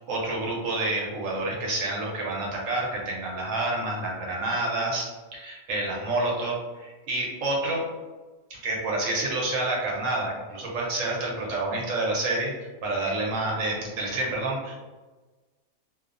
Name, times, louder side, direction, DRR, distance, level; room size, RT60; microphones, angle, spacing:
voice 1, 0.0-7.8 8.5-12.5 12.8-14.8, right 2 dB, 70° right, -3 dB, 0.9 m, -28 dB
2.6 x 2.0 x 2.4 m, 1.3 s
omnidirectional pair, 1.5 m